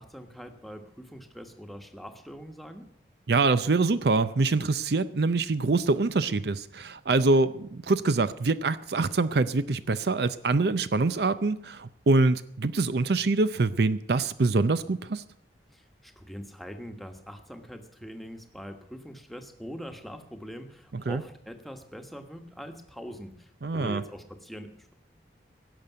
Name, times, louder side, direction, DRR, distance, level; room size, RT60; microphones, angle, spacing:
voice 1, 0.0-2.9 15.7-24.9, equal, ahead, 5 dB, 1.3 m, -43 dB
voice 2, 3.3-15.2 20.9-21.2 23.6-24.0, right 3 dB, 65° right, 14 dB, 0.5 m, -25 dB
17.0 x 6.8 x 9.2 m, 0.68 s
head